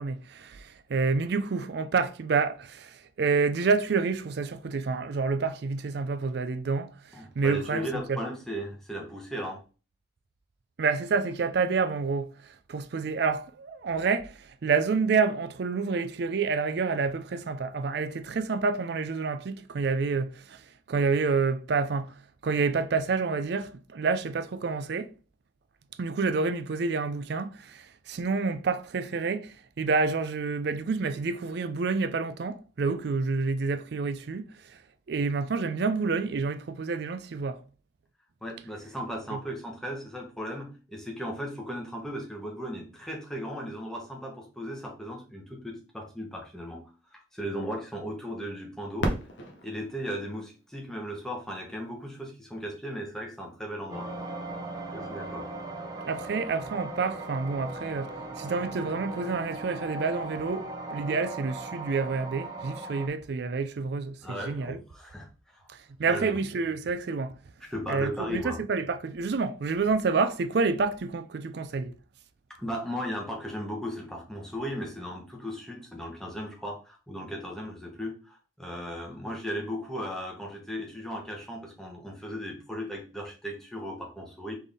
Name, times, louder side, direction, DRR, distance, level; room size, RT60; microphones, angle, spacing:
voice 1, 0.0-8.2 10.8-25.1 26.0-34.8 35.1-37.6 39.3-39.4 56.1-64.8 65.7-67.4 67.9-71.9, right 4 dB, 55° right, 0.4 m, -28 dB
voice 2, 7.1-9.6 38.4-46.8 47.1-49.1 49.6-54.1 54.9-55.5 64.2-65.6 66.1-66.4 67.7-68.6 72.6-84.5, equal, 5° left, 1.1 m, -36 dB
Fireworks, 49.0-51.7 52.4-52.5 53.2-53.7 55.6-55.7, equal, 70° left, 1.0 m, -35 dB
sound 1, 53.9-63.1, right 2 dB, 20° right, 0.7 m, -38 dB
4.0 x 3.5 x 3.5 m
head